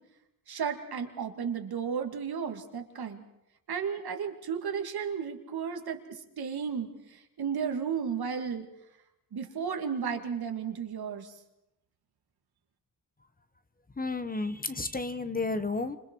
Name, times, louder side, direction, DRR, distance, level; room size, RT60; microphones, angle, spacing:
voice 1, 0.5-3.2 3.7-8.6 9.3-11.3, right 7 dB, 75° right, 5 dB, 2.5 m, -34 dB
voice 2, 14.0-16.0, left 3 dB, 25° left, 10 dB, 1.2 m, -32 dB
29.5 x 27.0 x 4.7 m, 0.87 s
wide cardioid pair, 105°, 38 cm